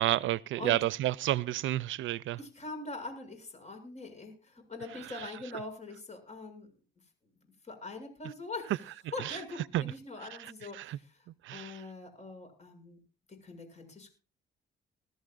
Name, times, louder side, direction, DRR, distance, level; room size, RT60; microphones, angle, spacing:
voice 1, 0.0-2.4 9.2-9.4 9.7-9.8 10.7-11.0 11.4-11.8, right 14 dB, 75° right, 0.5 m, -30 dB
voice 2, 2.4-6.7 7.6-8.8 9.1-13.0 13.4-14.1, left 3 dB, 35° left, 7.3 m, -43 dB
20.5 x 13.5 x 2.5 m
cardioid pair, 90°, 20 cm